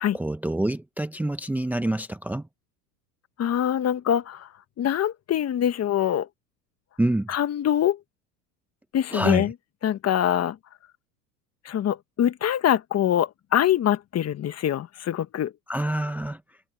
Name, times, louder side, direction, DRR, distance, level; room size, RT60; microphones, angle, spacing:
voice 1, 0.1-2.4 7.0-7.3 9.1-9.5 15.7-16.4, right 1 dB, 5° right, 0.8 m, -26 dB
voice 2, 3.4-4.5 4.8-6.3 7.3-8.0 8.9-9.5 9.8-10.6 11.6-15.5, left 10 dB, 35° left, 1.6 m, -24 dB
hypercardioid pair, 100°, 46 cm